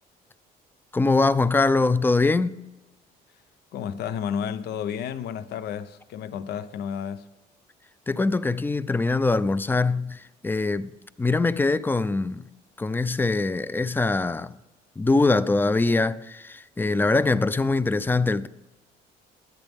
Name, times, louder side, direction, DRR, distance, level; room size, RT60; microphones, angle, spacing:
voice 1, 0.9-2.6 8.1-10.9 11.2-12.5 12.8-14.6 15.0-18.5, left 3 dB, 10° left, 0.5 m, -23 dB
voice 2, 3.7-7.3, left 8 dB, 75° left, 0.8 m, -31 dB
21.0 x 8.1 x 3.6 m
cardioid pair, 110°, 17 cm